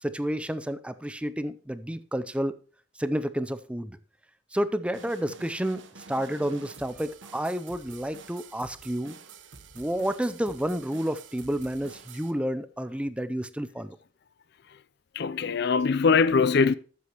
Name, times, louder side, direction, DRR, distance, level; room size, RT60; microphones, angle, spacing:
voice 1, 0.0-2.5 3.0-4.0 4.5-9.2 9.7-14.0, equal, 5° right, 0.5 m, -30 dB
sound 1, 4.9-12.3, right 5 dB, 80° right, 1.1 m, -48 dB
voice 2, 15.1-16.7, left 5 dB, 60° left, 0.5 m, -22 dB
12.5 x 8.5 x 3.0 m
head